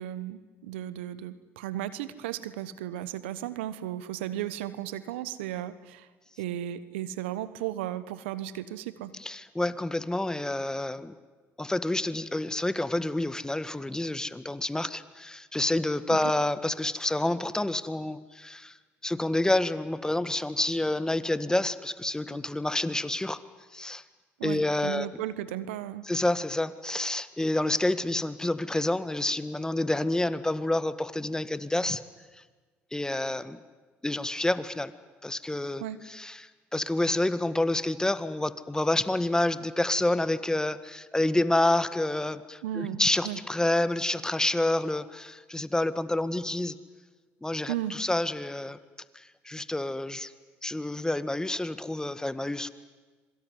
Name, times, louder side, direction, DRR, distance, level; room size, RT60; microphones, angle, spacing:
voice 1, 0.0-6.1 6.4-9.1 24.4-26.1 35.8-36.0 42.6-43.4 47.7-47.9, right 12 dB, 90° right, 15 dB, 1.2 m, -35 dB
voice 2, 9.2-11.1 11.6-18.8 19.0-23.4 23.7-24.0 24.4-25.1 26.0-32.0 32.9-33.6 34.0-34.9 35.2-46.7 47.4-48.8 49.1-50.3 50.6-52.7, left 1 dB, 10° left, 14 dB, 1.7 m, -28 dB
26.0 x 23.5 x 9.6 m, 1.3 s
hypercardioid pair, 65°, 6 cm